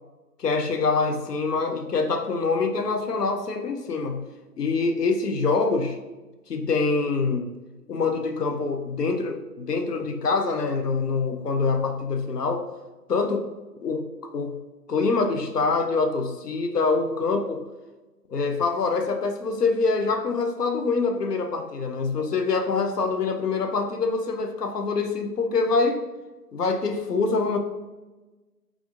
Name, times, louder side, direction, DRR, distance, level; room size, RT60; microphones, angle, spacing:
voice 1, 0.4-4.2 4.6-6.0 6.5-7.5 7.9-12.7 13.1-13.5 13.8-14.6 14.9-17.6 18.3-26.0 26.5-27.6, left 4 dB, 75° left, 5 dB, 0.7 m, -25 dB
3.5 x 2.4 x 3.7 m, 1.2 s
figure-of-eight pair, 145°, 49 cm